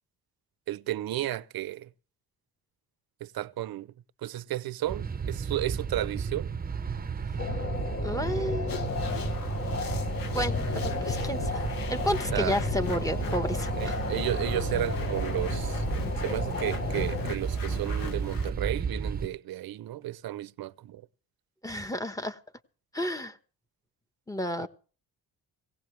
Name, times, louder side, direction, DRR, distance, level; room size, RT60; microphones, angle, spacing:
voice 1, 0.7-1.9 3.2-3.9 4.2-6.5 12.3-12.6 13.8-15.8 16.2-21.0 24.6-24.7, right 14 dB, 65° right, 0.7 m, -33 dB
sound 1, 4.9-19.3, right 6 dB, 25° right, 0.8 m, -33 dB
sound 2, 7.4-17.3, left 5 dB, 35° left, 1.2 m, -34 dB
voice 2, 8.0-8.9 10.3-11.6 11.9-14.0 21.6-22.4 22.9-23.4 24.3-24.7, equal, 10° left, 1.2 m, -31 dB
sound 3, 8.7-18.5, left 6 dB, 60° left, 1.9 m, -42 dB
18.5 x 17.5 x 3.3 m
cardioid pair, 120°, 39 cm